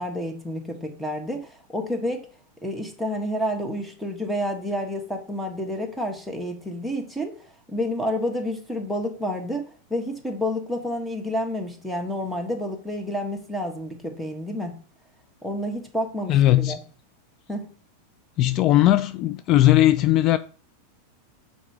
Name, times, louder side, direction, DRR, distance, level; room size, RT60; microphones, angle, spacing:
voice 1, 0.0-2.2 2.6-7.4 7.7-14.8 15.4-16.8 17.5-17.7, equal, ahead, 1.5 m, -29 dB
voice 2, 16.3-16.8 18.4-20.4, left 14 dB, 45° left, 0.4 m, -18 dB
6.0 x 4.1 x 4.7 m
hypercardioid pair, 120°, 0 cm